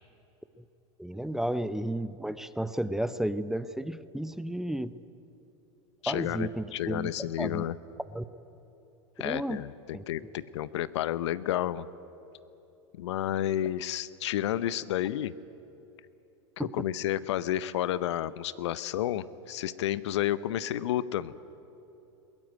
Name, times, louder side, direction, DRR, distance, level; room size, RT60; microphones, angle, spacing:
voice 1, 1.0-5.0 6.1-7.6 8.1-8.2 9.2-9.6 9.9-10.3 16.6-16.8, right 1 dB, 5° right, 15 dB, 0.6 m, -33 dB
voice 2, 6.0-7.7 9.2-11.9 13.0-15.3 16.6-21.3, left 12 dB, 70° left, 17 dB, 0.7 m, -31 dB
21.5 x 16.5 x 9.3 m, 3.0 s
hypercardioid pair, 95°, 15 cm